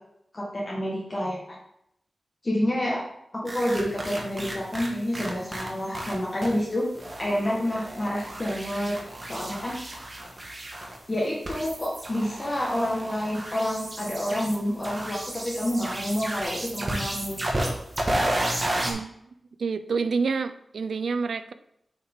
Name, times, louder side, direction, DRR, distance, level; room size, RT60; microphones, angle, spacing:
voice 1, 0.3-1.6 2.4-3.0 3.3-6.9 7.2-9.0 9.3-9.8 11.1-17.7, equal, 30° left, -4 dB, 1.5 m, -28 dB
sound 1, 3.5-6.1 6.4-6.6 7.0-18.9, right 1 dB, 30° right, 1.6 m, -32 dB
voice 2, 19.6-21.5, right 5 dB, 85° right, 11 dB, 0.5 m, -28 dB
7.9 x 4.8 x 3.7 m, 0.76 s
wide cardioid pair, 95°, 0 cm